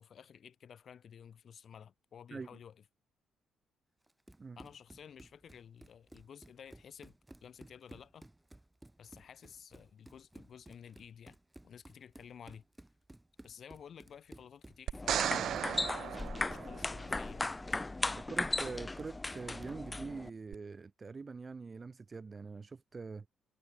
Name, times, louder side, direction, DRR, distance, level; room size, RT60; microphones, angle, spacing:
voice 1, 0.0-2.8 4.6-7.2 7.4-8.3 9.0-11.4 11.6-12.6 13.4-17.5, left 8 dB, 55° left, 8.0 m, -53 dB
Run, 4.1-19.9, right 1 dB, 10° right, 2.3 m, -56 dB
sound 1, 14.9-20.3, left 2 dB, 15° left, 1.6 m, -37 dB
sound 2, 14.9-17.2 20.5-20.6, right 10 dB, 70° right, 0.5 m, -36 dB
voice 2, 18.1-23.3, right 4 dB, 30° right, 1.9 m, -44 dB
cardioid pair, 90°, 0 cm